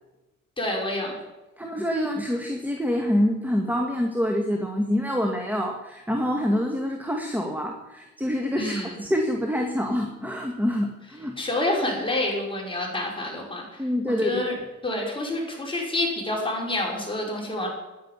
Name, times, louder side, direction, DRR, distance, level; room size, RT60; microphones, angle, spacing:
voice 1, 0.6-1.2 8.6-9.0 11.4-14.5 14.8-17.7, left 1 dB, 15° left, -2 dB, 6.2 m, -28 dB
voice 2, 1.6-11.4 13.8-14.5, equal, 5° right, 2 dB, 2.1 m, -26 dB
10.5 x 10.5 x 9.8 m, 1.1 s
cardioid pair, 90°, 30 cm